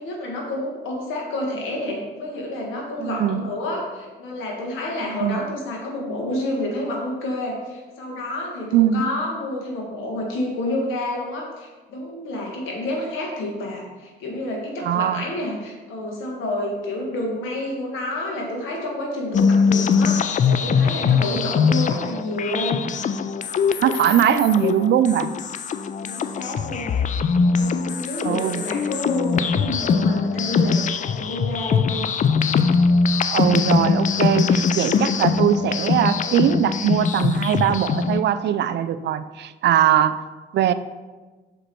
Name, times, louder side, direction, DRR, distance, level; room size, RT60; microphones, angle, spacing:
voice 1, 0.0-22.8 26.0-27.1 27.5-32.0, left 1 dB, 90° left, -1 dB, 1.6 m, -29 dB
voice 2, 3.0-3.4 5.0-5.4 8.7-9.0 14.8-15.2 23.8-25.3 28.2-28.6 33.3-40.2 40.5-40.7, right 10 dB, 65° right, 13 dB, 0.4 m, -21 dB
sound 1, 19.3-38.2, left 5 dB, 40° left, 0.4 m, -22 dB
6.1 x 4.9 x 4.4 m, 1.3 s
cardioid pair, 90°, 20 cm